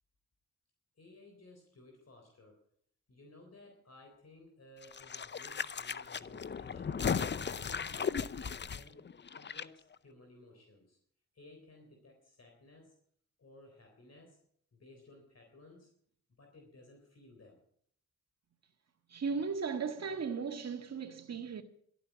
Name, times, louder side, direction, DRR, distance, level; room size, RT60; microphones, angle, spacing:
voice 1, 1.0-2.6 3.1-7.1 7.5-9.0 9.3-11.0 11.3-13.0 13.4-14.4 14.7-15.9 16.4-17.6, left 2 dB, 50° left, 3.8 m, -58 dB
sound 1, 4.8-9.6 9.9-10.0, left 6 dB, 35° left, 0.6 m, -36 dB
voice 2, 19.1-21.6, right 5 dB, 50° right, 1.8 m, -36 dB
12.5 x 9.2 x 8.1 m
cardioid pair, 60°, 32 cm